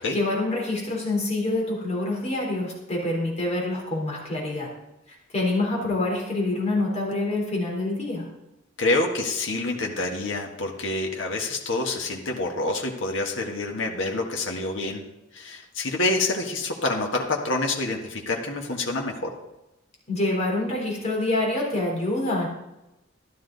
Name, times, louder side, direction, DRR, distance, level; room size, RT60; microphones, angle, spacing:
voice 1, 0.0-4.7 5.1-8.3 20.1-22.5, left 2 dB, 35° left, -2 dB, 3.8 m, -26 dB
voice 2, 8.8-15.0 15.3-19.3, left 2 dB, 75° left, 1 dB, 1.6 m, -27 dB
13.5 x 11.5 x 4.0 m, 0.94 s
head